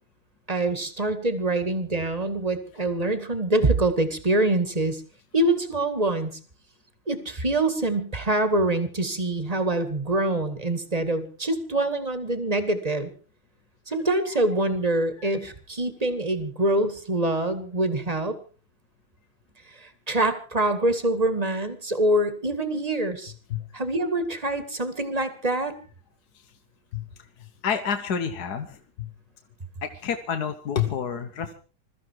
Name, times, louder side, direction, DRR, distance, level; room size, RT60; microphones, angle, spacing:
voice 1, 0.5-5.0 5.3-6.4 7.1-13.1 13.9-18.4 19.7-23.3 23.7-25.7, right 2 dB, 20° right, 10 dB, 1.8 m, -25 dB
voice 2, 27.4-29.1 29.8-31.5, left 7 dB, 55° left, 7 dB, 1.5 m, -29 dB
22.0 x 13.5 x 4.6 m, 0.39 s
omnidirectional pair, 2.3 m